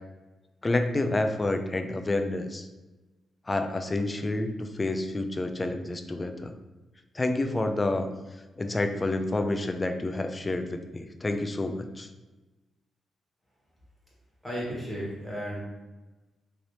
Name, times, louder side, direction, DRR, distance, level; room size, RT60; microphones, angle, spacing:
voice 1, 0.6-2.7 3.5-6.5 7.1-8.1 8.6-12.1, left 2 dB, 25° left, 7 dB, 0.3 m, -29 dB
voice 2, 14.4-15.6, equal, 5° left, -6 dB, 1.4 m, -34 dB
3.2 x 2.8 x 2.7 m, 1.1 s
cardioid pair, 90°, 0 cm